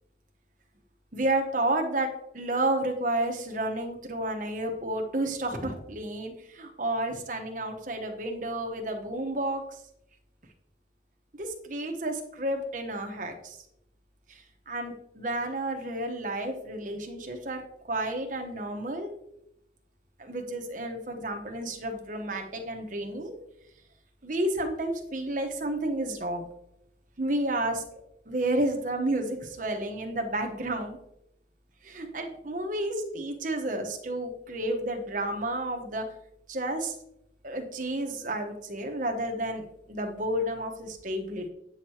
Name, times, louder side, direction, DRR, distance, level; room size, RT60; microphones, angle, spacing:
voice 1, 1.1-2.1 2.3-9.8 11.4-13.6 14.3-17.6 17.9-19.1 20.2-23.3 24.2-26.4 27.2-28.0 28.3-31.0 31.8-36.0 36.5-37.0 37.4-41.5, right 1 dB, 45° right, 4 dB, 1.1 m, -31 dB
8.9 x 6.4 x 2.9 m, 0.80 s
head